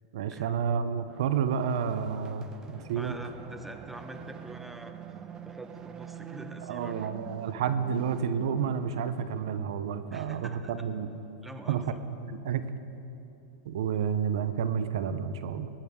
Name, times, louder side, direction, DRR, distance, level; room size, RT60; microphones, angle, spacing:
voice 1, 0.1-3.1 6.6-11.1 11.7-11.8 12.2-12.6 13.6-15.7, right 7 dB, 70° right, 12 dB, 0.6 m, -30 dB
sound 1, 1.1-10.3, right 8 dB, 25° right, 0.5 m, -46 dB
voice 2, 2.9-4.9 5.4-7.1 10.1-10.9 11.4-12.0, right 1 dB, 5° right, 6 dB, 0.9 m, -45 dB
20.0 x 10.0 x 3.6 m, 2.9 s
hypercardioid pair, 120°, 3 cm